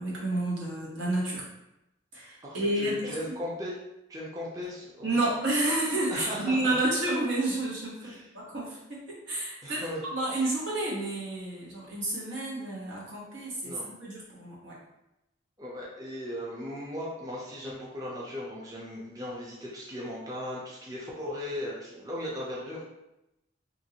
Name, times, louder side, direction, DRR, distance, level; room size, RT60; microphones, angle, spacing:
voice 1, 0.0-1.4 2.1-3.1 5.0-9.8 10.1-14.8, right 2 dB, 75° right, -5 dB, 1.1 m, -30 dB
voice 2, 2.4-3.8 4.1-5.2 6.1-6.8 8.0-8.3 9.6-10.0 13.6-13.9 15.6-22.8, left 1 dB, 20° right, -5 dB, 0.5 m, -37 dB
2.9 x 2.5 x 2.8 m, 0.90 s
head